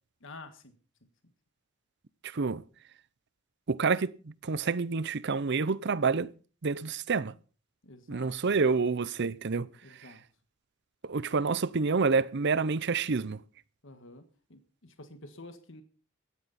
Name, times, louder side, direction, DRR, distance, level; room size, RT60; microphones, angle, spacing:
voice 1, 0.2-0.7 7.8-8.4 9.8-10.2 13.8-14.2 14.5-15.8, left 2 dB, 60° left, 1.6 m, -49 dB
voice 2, 2.2-2.6 3.7-6.3 6.6-7.3 8.1-9.7 10.0-10.1 11.0-13.4, right 4 dB, 50° right, 0.6 m, -28 dB
17.0 x 13.5 x 4.2 m
head